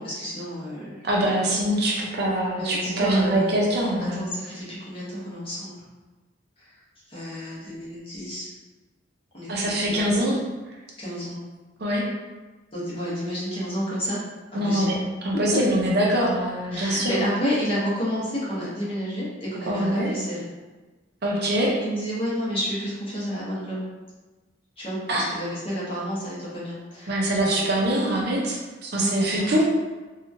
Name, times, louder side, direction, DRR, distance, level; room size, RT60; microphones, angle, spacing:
voice 1, 0.0-0.9 1.2-1.5 1.8-2.1 2.6-3.6 4.1-5.7 6.6-6.7 7.1-8.5 9.3-10.1 11.0-11.4 12.7-14.2 14.5-14.9 15.3-15.8 16.7-20.5 21.4-23.9 24.8-27.3 28.9-29.5, equal, 30° left, -8 dB, 0.9 m, -30 dB
voice 2, 1.0-4.3 9.5-10.4 11.8-12.0 14.5-15.0 15.2-17.3 19.7-20.1 21.2-21.8 25.1-25.2 27.1-29.6, right 1 dB, 55° right, -3 dB, 0.6 m, -23 dB
2.8 x 2.3 x 2.6 m, 1.2 s
head